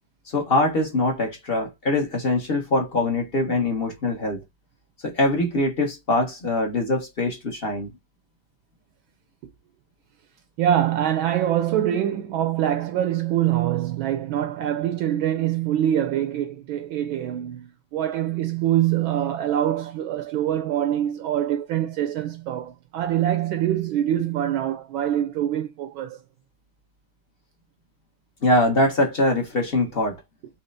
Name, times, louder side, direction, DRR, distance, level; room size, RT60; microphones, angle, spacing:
voice 1, 0.3-4.4 5.0-7.9 28.4-30.2, left 2 dB, 40° left, 0.8 m, -23 dB
voice 2, 10.6-26.2, right 11 dB, 75° right, 1.2 m, -24 dB
4.3 x 3.3 x 2.5 m
omnidirectional pair, 2.4 m